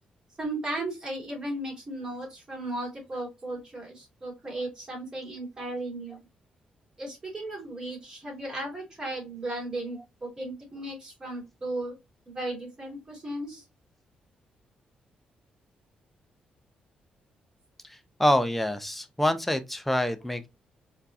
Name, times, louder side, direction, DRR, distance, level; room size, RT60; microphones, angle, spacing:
voice 1, 0.4-6.2 7.0-11.9 12.3-13.6, right 1 dB, 25° right, 2.5 m, -35 dB
voice 2, 18.2-20.5, left 1 dB, 5° left, 0.6 m, -26 dB
4.4 x 2.7 x 2.4 m
cardioid pair, 110°, 3 cm